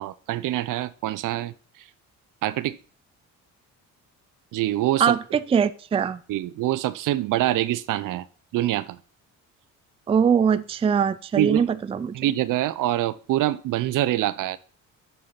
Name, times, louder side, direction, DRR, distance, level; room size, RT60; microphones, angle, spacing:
voice 1, 0.0-1.5 2.4-2.8 4.5-5.2 6.3-8.3 8.5-9.0 11.3-11.7 12.1-14.6, right 14 dB, 70° right, 0.6 m, -25 dB
voice 2, 5.0-6.2 10.1-12.2, right 7 dB, 20° right, 0.4 m, -22 dB
6.8 x 6.3 x 5.7 m
cardioid pair, 115°, 33 cm